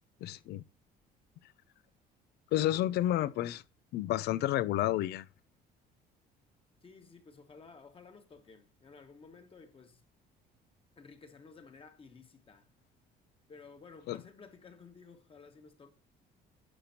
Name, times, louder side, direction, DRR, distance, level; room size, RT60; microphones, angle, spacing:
voice 1, 0.2-0.6 2.5-3.6 3.9-5.3 14.1-14.2, left 14 dB, 75° left, 0.6 m, -30 dB
voice 2, 6.8-10.0 11.0-12.7 13.5-15.9, left 4 dB, 35° left, 1.7 m, -54 dB
9.9 x 6.9 x 2.9 m
cardioid pair, 110°, 17 cm